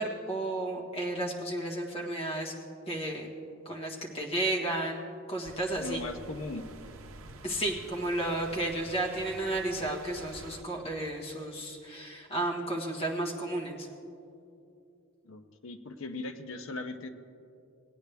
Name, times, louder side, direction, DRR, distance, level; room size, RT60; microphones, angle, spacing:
voice 1, 0.0-2.5 2.9-3.3 3.6-5.0 5.3-6.0 7.4-13.9, right 1 dB, 30° left, -2 dB, 1.4 m, -33 dB
sound 1, 5.4-10.6, right 3 dB, 75° right, 0.7 m, -49 dB
voice 2, 5.8-6.6 15.2-17.1, left 3 dB, 70° left, 8 dB, 0.6 m, -39 dB
18.5 x 9.4 x 3.4 m, 2.7 s
head